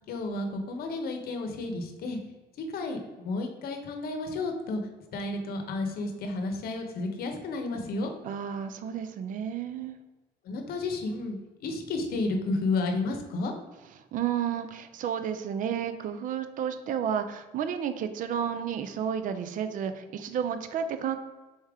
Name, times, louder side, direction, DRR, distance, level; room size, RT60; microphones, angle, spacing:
voice 1, 0.1-2.2 2.7-4.8 5.1-8.1 10.4-13.5, left 2 dB, 65° left, 5 dB, 0.8 m, -32 dB
voice 2, 8.2-10.0 14.1-21.2, right 8 dB, 50° right, 9 dB, 0.4 m, -31 dB
4.2 x 3.3 x 3.5 m, 1.2 s
cardioid pair, 110°, 17 cm